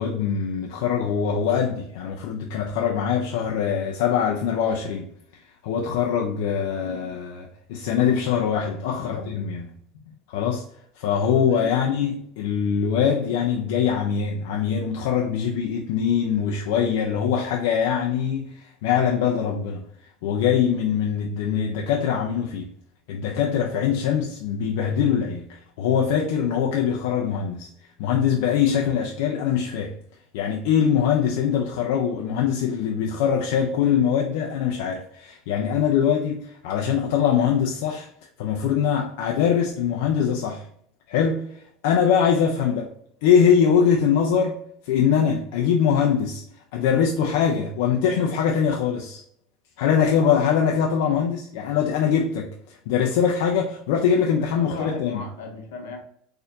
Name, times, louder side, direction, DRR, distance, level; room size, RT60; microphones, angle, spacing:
voice 1, 0.0-5.1 5.6-9.8 10.3-10.6 11.0-19.9 20.2-22.7 23.1-27.7 28.0-29.9 30.3-38.1 38.4-40.7 41.1-41.4 41.8-42.8 43.2-46.4 46.7-49.2 49.8-55.2, left 7 dB, 75° left, 0.5 m, -23 dB
voice 2, 6.8-7.2 8.8-9.3 11.2-11.8 42.6-42.9 54.4-56.0, left 5 dB, 90° left, 0.9 m, -38 dB
4.3 x 2.6 x 2.7 m
supercardioid pair, 145°, 0 cm